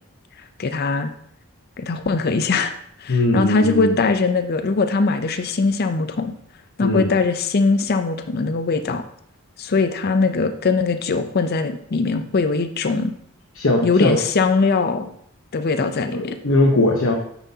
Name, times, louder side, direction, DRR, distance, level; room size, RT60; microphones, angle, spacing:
voice 1, 0.6-1.1 1.8-2.7 3.0-6.3 6.8-9.0 9.6-13.1 13.8-15.1 15.5-16.4, left 4 dB, 45° left, 9 dB, 0.5 m, -21 dB
voice 2, 3.1-4.0 6.8-7.1 13.5-14.2 16.1-17.1, left 2 dB, 60° left, 0 dB, 0.9 m, -19 dB
9.1 x 6.1 x 2.8 m, 0.68 s
head